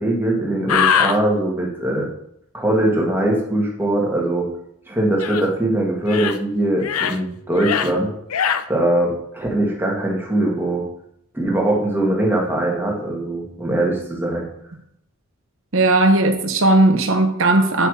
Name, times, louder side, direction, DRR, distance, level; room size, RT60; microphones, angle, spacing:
voice 1, 0.0-2.1 2.5-4.5 4.9-8.1 8.7-10.8 11.3-14.5, right 1 dB, 10° right, 1.9 m, -21 dB
sound 1, 0.7-1.2 5.2-5.5 6.0-6.4 6.8-7.2 7.5-7.9 8.3-8.6, left 7 dB, 75° left, 0.5 m, -21 dB
voice 2, 15.7-17.9, right 2 dB, 60° right, 1.1 m, -16 dB
8.2 x 5.8 x 4.8 m
head